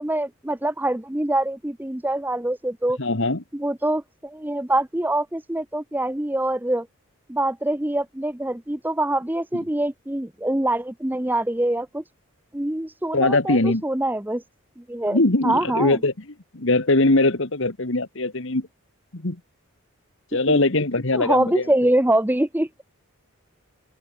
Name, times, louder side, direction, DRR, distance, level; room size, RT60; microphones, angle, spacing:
voice 1, 0.0-3.0 3.5-6.9 7.3-12.0 12.5-14.4 14.9-15.2 15.4-16.0 20.5-20.6 21.1-22.7, right 1 dB, 10° right, 0.6 m, -24 dB
voice 2, 3.0-3.4 13.1-13.8 15.1-16.1 16.5-18.7 19.1-19.4 20.3-21.7, left 2 dB, 55° left, 1.6 m, -21 dB
open air
head